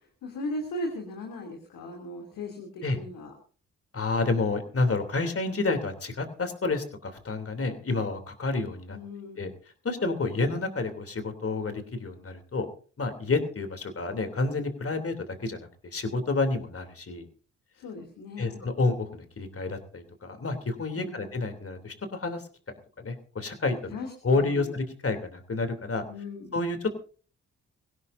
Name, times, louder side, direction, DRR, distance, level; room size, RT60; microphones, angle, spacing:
voice 1, 0.0-3.3 8.9-9.5 17.7-18.7 20.9-21.3 23.9-24.7 26.1-26.6, left 1 dB, 75° left, 2 dB, 2.9 m, -38 dB
voice 2, 3.9-9.0 9.4-9.5 9.8-12.7 13.0-17.3 18.4-22.5 23.0-24.0 24.2-26.0 26.5-26.9, left 3 dB, 45° left, 7 dB, 3.2 m, -29 dB
22.5 x 16.5 x 2.7 m, 0.40 s
hypercardioid pair, 40°, 32 cm